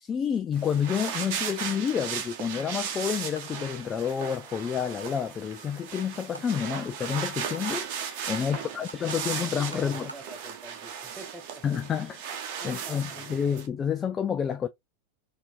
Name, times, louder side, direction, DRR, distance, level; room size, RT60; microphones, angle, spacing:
voice 1, 0.0-10.1 11.6-12.2 12.6-14.7, left 7 dB, 25° left, 0.3 m, -29 dB
sound 1, 0.5-13.7, right 8 dB, 45° right, 0.9 m, -36 dB
sound 2, 0.8-0.9 1.2-1.3 1.6-2.7 3.0-3.1 3.4-3.5 3.8-3.9 4.2-4.3 4.6-4.7 5.0-5.1 5.3-5.4 5.7-6.1 6.3-6.4 6.7-6.8 7.1-7.6 7.9-8.1 8.3-10.3, right 2 dB, 85° right, 0.5 m, -45 dB
voice 2, 8.4-11.6 12.0-12.1 12.6-13.5, right 2 dB, 10° right, 0.9 m, -47 dB
4.2 x 2.6 x 2.3 m
figure-of-eight pair, 90°, 0 cm